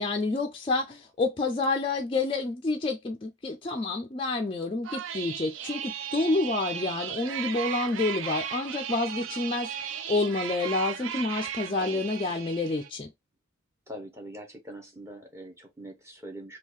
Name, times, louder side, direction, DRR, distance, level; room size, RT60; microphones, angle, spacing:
voice 1, 0.0-9.7 10.1-13.1, left 3 dB, 25° left, 0.3 m, -28 dB
sound 1, 4.8-12.9, right 9 dB, 70° right, 0.4 m, -36 dB
voice 2, 13.9-16.6, right 1 dB, 15° right, 0.8 m, -43 dB
3.6 x 2.3 x 3.0 m
head